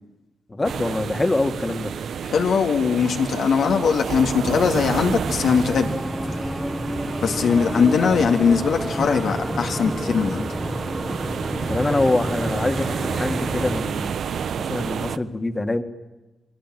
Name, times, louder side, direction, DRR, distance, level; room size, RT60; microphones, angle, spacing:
voice 1, 0.5-1.9 11.7-14.1 14.7-15.8, left 2 dB, 20° left, 7 dB, 1.9 m, -24 dB
sound 1, 0.6-15.2, right 7 dB, 80° right, 0.8 m, -31 dB
voice 2, 2.2-5.9 6.3-6.4 7.2-10.4, left 6 dB, 85° left, 3 dB, 2.0 m, -20 dB
sound 2, 4.5-13.8, equal, ahead, 1.2 m, -30 dB
29.5 x 22.0 x 7.6 m, 1.1 s
wide cardioid pair, 120°, 0 cm